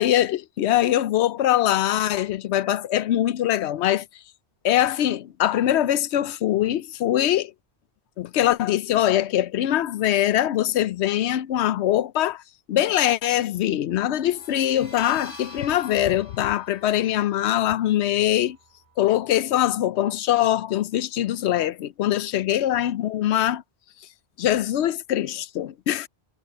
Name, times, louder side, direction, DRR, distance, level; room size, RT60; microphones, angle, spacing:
voice 1, 0.0-4.1 4.6-7.5 8.2-12.4 12.7-18.6 19.0-23.6 24.4-26.1, left 12 dB, 85° left, 0.9 m, -22 dB
sound 1, 14.2-19.7, left 1 dB, 45° left, 3.4 m, -47 dB
omnidirectional pair, 1.1 m